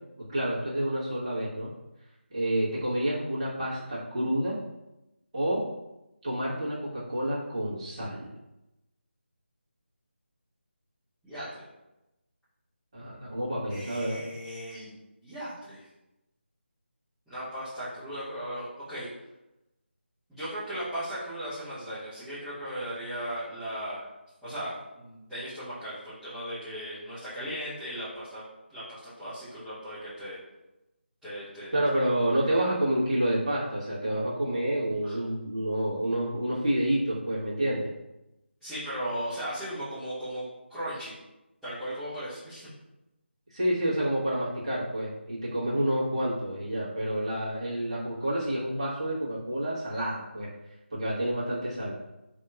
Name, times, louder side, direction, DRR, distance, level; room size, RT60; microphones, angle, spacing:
voice 1, 0.3-1.7 2.3-4.6 5.3-5.6 6.2-8.2 12.9-14.2 31.7-37.9 43.5-50.5 50.9-51.9, right 1 dB, 30° right, -9 dB, 1.2 m, -29 dB
voice 2, 11.2-11.6 13.7-15.0 15.2-15.8 17.3-19.1 20.3-24.1 24.4-28.4 28.7-30.4 31.2-31.7 35.0-35.2 38.6-40.4 40.7-41.1 41.6-42.7, equal, ahead, -20 dB, 0.6 m, -37 dB
4.2 x 2.8 x 2.3 m, 0.96 s
figure-of-eight pair, 160°, 6 cm